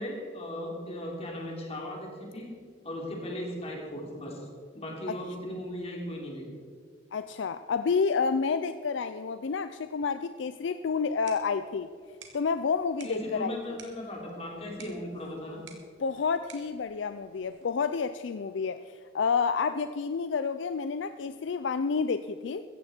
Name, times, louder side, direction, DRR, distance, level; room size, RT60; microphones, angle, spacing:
voice 1, 0.0-2.5 2.8-4.4 4.7-6.5 13.0-15.6, left 1 dB, 35° left, -1 dB, 3.3 m, -37 dB
voice 2, 7.1-11.9 12.3-13.6 16.0-22.6, left 5 dB, 65° left, 11 dB, 0.4 m, -29 dB
sound 1, 10.9-17.9, right 6 dB, 75° right, 2.1 m, -55 dB
16.0 x 14.5 x 4.4 m, 2.1 s
head